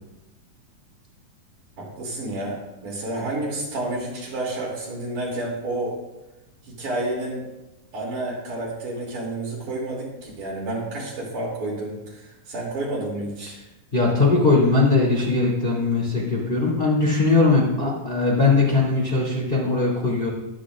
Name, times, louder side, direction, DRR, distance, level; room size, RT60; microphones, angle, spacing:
voice 1, 1.8-6.0 6.7-7.5 7.9-13.6, right 2 dB, 70° right, -4 dB, 4.3 m, -30 dB
voice 2, 13.9-20.3, left 3 dB, 15° left, -4 dB, 2.4 m, -20 dB
22.5 x 8.8 x 2.5 m, 1.0 s
omnidirectional pair, 3.9 m